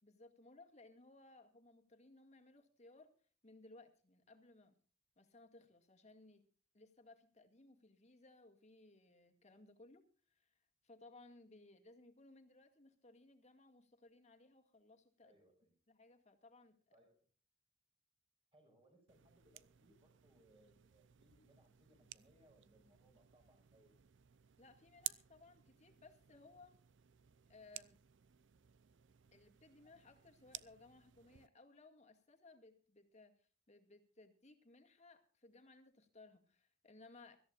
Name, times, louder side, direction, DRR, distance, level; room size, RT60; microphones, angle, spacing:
voice 1, 0.0-3.1 3.4-4.7 5.2-6.5 6.7-10.6 10.8-15.4 15.9-17.0 24.6-26.7 27.5-28.0 29.3-37.4, left 2 dB, 35° left, 4 dB, 2.1 m, -62 dB
voice 2, 15.2-15.7 16.9-17.3 18.5-23.9, right 1 dB, 30° right, 3 dB, 5.5 m, -70 dB
sound 1, 19.1-31.5, right 15 dB, 65° right, 0.5 m, -55 dB
24.0 x 14.0 x 2.5 m, 0.40 s
head